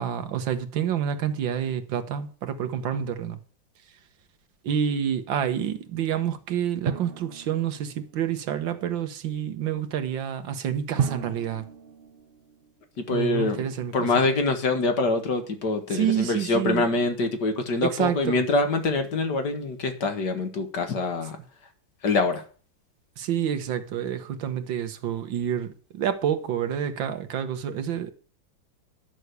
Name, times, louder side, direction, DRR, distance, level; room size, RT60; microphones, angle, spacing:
voice 1, 0.0-3.4 4.6-11.6 13.1-14.1 15.9-16.9 17.8-18.4 23.2-28.1, right 9 dB, 75° right, 1.8 m, -28 dB
Drum, 6.9-8.4 11.0-13.1, right 7 dB, 60° right, 0.6 m, -33 dB
voice 2, 13.0-13.6 13.9-21.4 22.0-22.4, left 3 dB, 60° left, 2.1 m, -25 dB
11.0 x 6.3 x 8.1 m
omnidirectional pair, 2.1 m